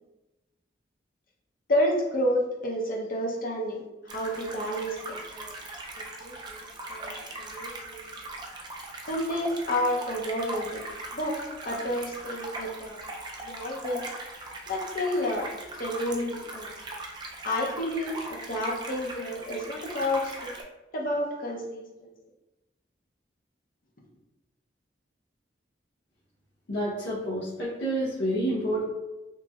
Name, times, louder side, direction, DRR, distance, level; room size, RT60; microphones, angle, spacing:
voice 1, 1.7-5.5 6.2-6.6 6.9-8.0 9.1-10.8 11.1-13.0 13.4-14.1 14.7-15.5 15.8-16.8 17.4-20.6 20.9-22.1, left 1 dB, 50° left, -1 dB, 0.6 m, -30 dB
sound 1, 4.1-20.6, right 2 dB, 25° right, 0.4 m, -40 dB
voice 2, 26.7-28.8, right 1 dB, 85° left, -8 dB, 0.8 m, -29 dB
3.0 x 2.7 x 2.3 m, 1.0 s
head